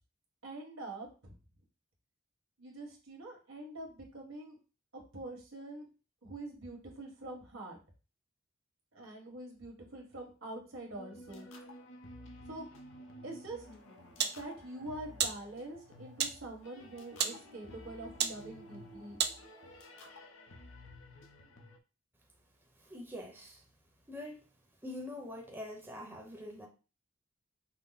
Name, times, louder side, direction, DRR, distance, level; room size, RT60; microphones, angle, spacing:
voice 1, 0.4-1.4 2.6-4.6 4.9-5.9 6.2-7.8 8.9-11.5 12.5-12.7 13.2-13.6 14.3-19.2, right 2 dB, 75° right, 0 dB, 1.7 m, -45 dB
sound 1, 10.9-21.8, left 1 dB, 70° left, 0.8 m, -52 dB
sound 2, 13.6-19.9, right 8 dB, 55° right, 0.5 m, -39 dB
voice 2, 22.8-23.6 24.1-24.4 24.8-26.7, left 1 dB, 10° right, 0 dB, 0.9 m, -44 dB
5.6 x 2.1 x 4.1 m, 0.33 s
head